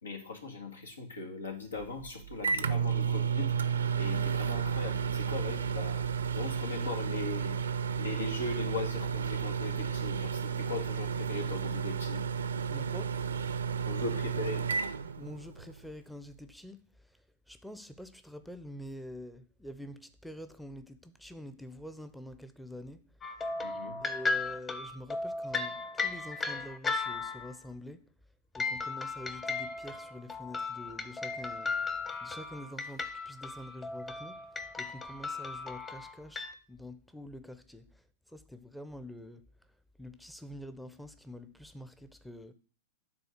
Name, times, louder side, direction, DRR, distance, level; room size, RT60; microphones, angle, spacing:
voice 1, 0.0-3.5 4.0-6.0 6.3-7.6 8.0-12.2 13.9-14.6 23.6-24.0, left 3 dB, 90° left, 1.9 m, -39 dB
Microwave oven, 1.8-15.8, right 7 dB, 85° right, 0.6 m, -32 dB
voice 2, 12.7-13.6 15.2-23.3 24.0-28.1 28.6-39.5 40.0-42.5, left 1 dB, ahead, 0.6 m, -47 dB
sound 1, 23.2-27.6 28.5-36.5, left 3 dB, 20° left, 1.0 m, -36 dB
9.6 x 4.0 x 6.5 m
hypercardioid pair, 110°, 0 cm